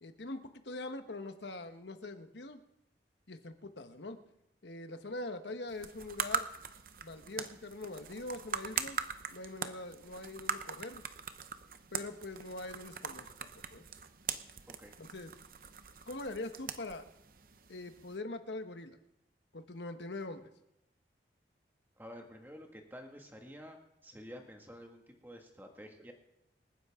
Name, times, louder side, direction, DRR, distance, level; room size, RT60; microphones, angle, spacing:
voice 1, 0.0-2.6 3.3-4.2 4.6-6.5 7.0-9.0 9.3-11.0 11.9-13.8 15.0-15.3 16.0-17.0 17.7-19.0 19.5-20.5, left 2 dB, 80° left, 8 dB, 1.2 m, -43 dB
sound 1, 5.7-18.2, right 6 dB, 50° right, 0.8 m, -41 dB
voice 2, 22.0-23.8 24.0-26.1, equal, 10° right, 2 dB, 1.8 m, -50 dB
26.5 x 10.0 x 3.7 m, 0.86 s
head